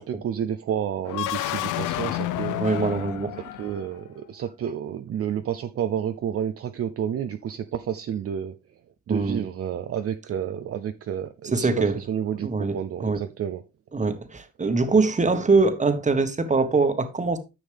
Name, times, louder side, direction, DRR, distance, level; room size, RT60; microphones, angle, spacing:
voice 1, 0.0-2.6 3.6-8.5 9.1-13.6, right 9 dB, 50° right, 0.6 m, -30 dB
sound 1, 1.0-4.0, left 14 dB, 85° left, 0.6 m, -30 dB
voice 2, 2.6-3.5 9.1-9.4 11.5-12.0 12.4-13.2 13.9-17.4, right 3 dB, 25° right, 1.4 m, -23 dB
9.9 x 6.3 x 3.5 m
cardioid pair, 90°, 30 cm